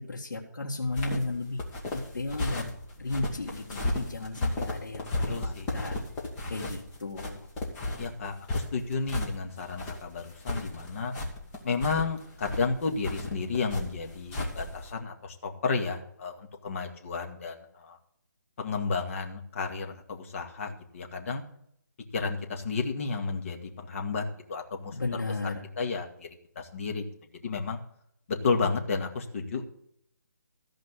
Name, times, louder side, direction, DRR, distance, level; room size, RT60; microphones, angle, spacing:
voice 1, 0.0-2.7 3.0-6.0 6.5-7.5 24.9-25.7, left 2 dB, 85° left, -2 dB, 2.1 m, -34 dB
sound 1, 0.8-14.9, left 2 dB, 15° left, 1.9 m, -34 dB
voice 2, 5.3-5.7 8.0-11.1 11.6-18.0 18.6-21.4 22.1-24.2 24.5-25.2 25.8-26.3 26.6-27.0 27.4-27.8 28.3-29.7, left 4 dB, 45° left, 3 dB, 2.1 m, -32 dB
14.5 x 5.2 x 8.2 m, 0.69 s
hypercardioid pair, 165°, 10 cm